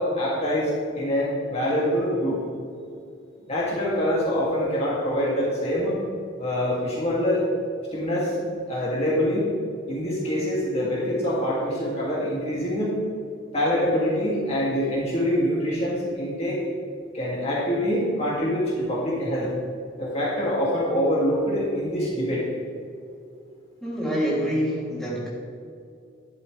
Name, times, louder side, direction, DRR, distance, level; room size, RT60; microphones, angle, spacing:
voice 1, 0.0-2.4 3.5-6.0 6.4-7.4 7.9-9.5 9.9-13.0 13.5-16.6 17.1-19.5 20.0-22.4, equal, 30° left, -6 dB, 2.6 m, -25 dB
voice 2, 23.8-25.3, equal, ahead, -8 dB, 3.0 m, -26 dB
12.5 x 11.5 x 3.4 m, 2.4 s
head